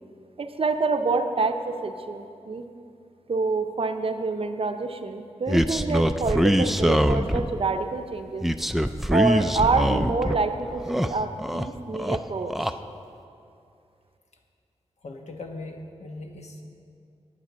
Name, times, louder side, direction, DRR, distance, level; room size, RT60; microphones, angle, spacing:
voice 1, 0.4-2.7 3.3-8.5 9.1-12.8, right 3 dB, 50° right, 7 dB, 0.6 m, -27 dB
sound 1, 5.5-7.6 8.4-10.4 10.7-11.7 11.9-12.7, equal, ahead, 0.4 m, -23 dB
voice 2, 15.0-16.6, left 2 dB, 70° left, 3 dB, 1.2 m, -39 dB
9.9 x 8.5 x 6.2 m, 2.5 s
wide cardioid pair, 85°, 12 cm